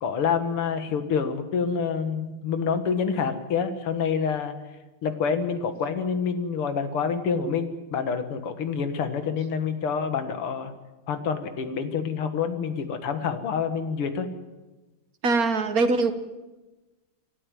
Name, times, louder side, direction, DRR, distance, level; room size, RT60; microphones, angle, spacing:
voice 1, 0.0-4.6 5.0-10.7 11.1-14.3, left 6 dB, 80° left, 9 dB, 2.5 m, -27 dB
voice 2, 15.2-16.1, right 3 dB, 45° right, 9 dB, 1.7 m, -22 dB
28.0 x 12.0 x 9.2 m, 1.2 s
omnidirectional pair, 2.4 m